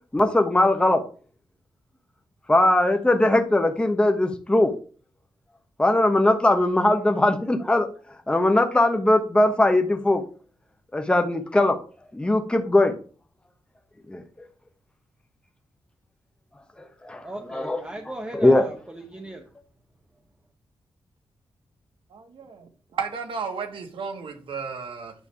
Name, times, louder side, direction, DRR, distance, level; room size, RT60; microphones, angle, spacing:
voice 1, 0.1-1.0 2.5-4.7 5.8-7.9 8.3-10.2 10.9-11.8 12.1-13.0 14.1-14.2 17.0-17.2 17.5-17.8 18.3-18.6, left 1 dB, 10° left, 5 dB, 1.0 m, -20 dB
voice 2, 17.2-19.5, right 1 dB, 15° right, 2 dB, 1.0 m, -37 dB
voice 3, 22.1-25.1, right 5 dB, 85° right, 5 dB, 1.5 m, -33 dB
9.9 x 3.3 x 7.0 m, 0.39 s
wide cardioid pair, 105°, 9 cm